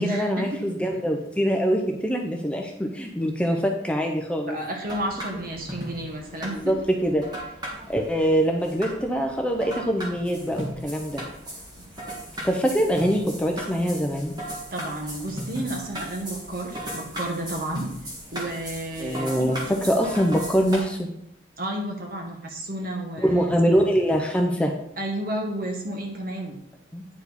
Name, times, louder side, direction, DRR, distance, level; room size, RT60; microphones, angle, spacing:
voice 1, 0.0-4.6 6.5-7.3 7.9-11.2 12.4-14.3 19.0-21.1 23.2-24.7 26.9-27.0, equal, 5° left, 2 dB, 0.6 m, -24 dB
voice 2, 4.5-6.7 11.8-11.9 12.4-12.5 14.7-17.9 18.3-19.6 21.6-23.5 25.0-26.6, right 1 dB, 50° right, 1 dB, 1.4 m, -31 dB
sound 1, 4.8-20.8, equal, 20° right, 1.7 m, -37 dB
9.5 x 4.7 x 4.1 m, 0.75 s
head